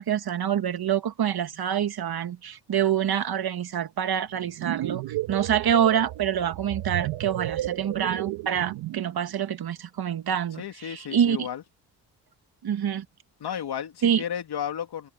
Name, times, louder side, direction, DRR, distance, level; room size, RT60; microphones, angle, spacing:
voice 1, 0.0-11.5 12.6-13.1 14.0-14.2, right 9 dB, 60° right, 1.9 m, -26 dB
sound 1, 4.4-9.2, right 14 dB, 85° right, 2.5 m, -33 dB
voice 2, 10.6-11.6 13.4-15.1, left 9 dB, 65° left, 3.0 m, -33 dB
open air
supercardioid pair, 50°, 42 cm